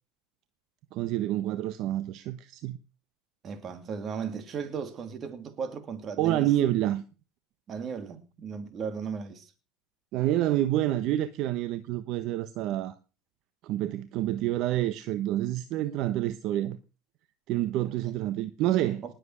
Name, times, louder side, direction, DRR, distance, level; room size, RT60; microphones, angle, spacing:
voice 1, 0.9-2.8 6.2-7.0 10.1-13.0 13.6-16.8 17.5-19.1, right 13 dB, 55° right, 1.1 m, -28 dB
voice 2, 3.4-6.5 7.7-9.5 19.0-19.1, right 6 dB, 35° right, 3.0 m, -36 dB
19.5 x 7.8 x 6.4 m
supercardioid pair, 110°, 0 cm